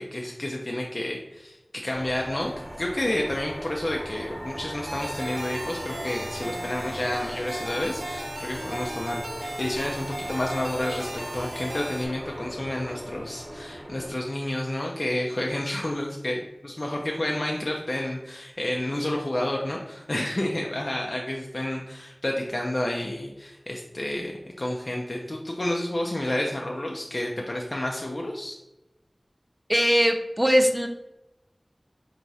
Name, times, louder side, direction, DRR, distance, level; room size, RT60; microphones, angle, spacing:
voice 1, 0.0-2.5 2.8-28.6, left 1 dB, 45° left, -1 dB, 0.5 m, -30 dB
sound 1, 1.9-14.1, equal, 35° right, 0.9 m, -39 dB
sound 2, 4.9-12.1, right 1 dB, 55° right, 0.8 m, -36 dB
voice 2, 29.7-30.9, equal, 10° right, 5 dB, 0.5 m, -20 dB
4.7 x 2.9 x 2.7 m, 0.93 s
wide cardioid pair, 50°, 0 cm